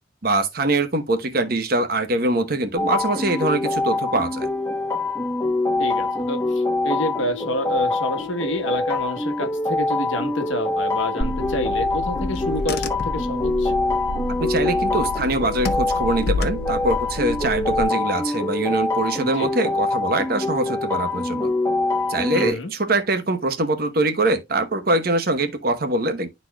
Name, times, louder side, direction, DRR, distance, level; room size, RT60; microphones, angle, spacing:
voice 1, 0.2-4.5 14.4-21.5 22.1-26.3, right 2 dB, 50° right, 1.0 m, -23 dB
sound 1, 2.8-22.5, left 2 dB, 15° left, 1.2 m, -25 dB
voice 2, 5.8-13.7 19.3-19.5 22.3-22.7, left 1 dB, 80° left, 1.2 m, -28 dB
Car / Engine, 11.2-17.8, left 2 dB, 55° left, 0.8 m, -29 dB
11.5 x 4.2 x 2.2 m
head